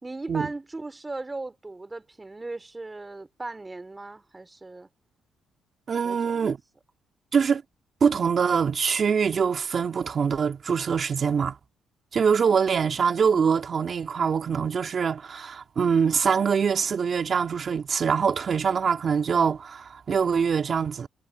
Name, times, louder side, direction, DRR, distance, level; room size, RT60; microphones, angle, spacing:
voice 1, 0.0-4.9 6.0-6.5, right 2 dB, 20° right, 3.3 m, -37 dB
voice 2, 5.9-6.6 7.3-7.6 8.0-11.6 12.1-21.1, right 6 dB, 45° right, 2.4 m, -24 dB
cardioid pair, 90°, 0 cm